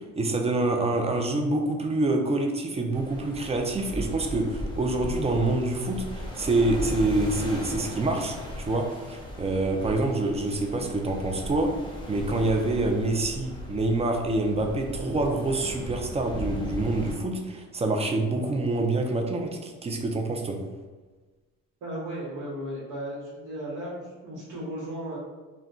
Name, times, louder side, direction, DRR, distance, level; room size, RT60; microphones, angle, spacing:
voice 1, 0.2-11.7 12.1-20.6, right 2 dB, 20° right, 3 dB, 0.4 m, -26 dB
sound 1, 2.9-17.1, equal, 15° left, 0.8 m, -37 dB
voice 2, 21.8-25.2, right 1 dB, 80° right, -5 dB, 1.0 m, -35 dB
2.2 x 2.1 x 3.8 m, 1.3 s
cardioid pair, 90°, 30 cm